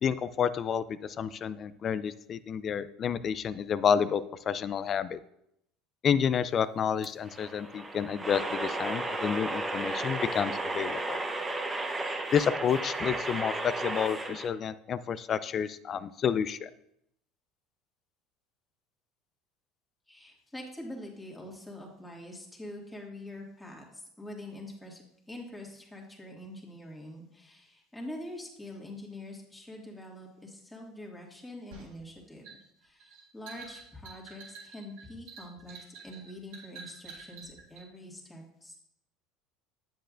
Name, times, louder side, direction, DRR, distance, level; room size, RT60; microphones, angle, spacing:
voice 1, 0.0-5.2 6.0-11.2 12.3-16.7, left 7 dB, 40° left, 15 dB, 0.3 m, -30 dB
sound 1, 7.0-14.5, right 2 dB, 15° right, 0.9 m, -34 dB
voice 2, 20.1-32.5 32.8-35.8 36.0-38.8, left 1 dB, 10° left, -2 dB, 2.0 m, -45 dB
sound 2, 31.7-37.9, right 5 dB, 80° right, 2.0 m, -48 dB
8.8 x 7.5 x 2.5 m, 0.76 s
supercardioid pair, 100°, 0 cm